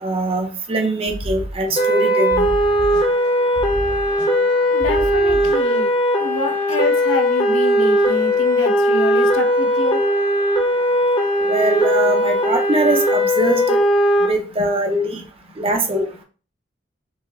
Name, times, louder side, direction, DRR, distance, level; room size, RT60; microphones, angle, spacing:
voice 1, 0.0-2.5 11.4-13.8 14.3-15.2 15.6-16.1, right 1 dB, 30° right, 4 dB, 0.6 m, -22 dB
sound 1, 1.1-2.0 2.3-3.3 3.6-4.5 4.8-5.8, right 1 dB, 65° left, 1.5 m, -30 dB
sound 2, 1.8-14.3, equal, 25° left, 0.7 m, -18 dB
voice 2, 4.7-10.0 14.6-14.7 15.2-15.3 15.6-15.7, left 1 dB, 85° left, 4 dB, 0.6 m, -27 dB
4.6 x 2.1 x 3.1 m, 0.37 s
head